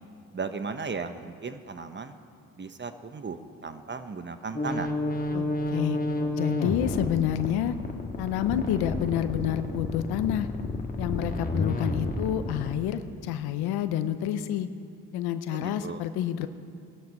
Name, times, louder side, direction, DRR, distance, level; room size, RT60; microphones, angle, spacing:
voice 1, 0.3-2.2 2.6-4.9 15.5-16.0, right 4 dB, 30° right, 9 dB, 1.0 m, -36 dB
sound 1, 4.5-12.7, left 2 dB, 25° left, 1.8 m, -30 dB
voice 2, 6.3-7.7 8.2-10.5 11.0-14.7 15.1-16.5, left 10 dB, 85° left, 11 dB, 0.8 m, -28 dB
18.5 x 11.5 x 5.4 m, 2.4 s
supercardioid pair, 60°, 37 cm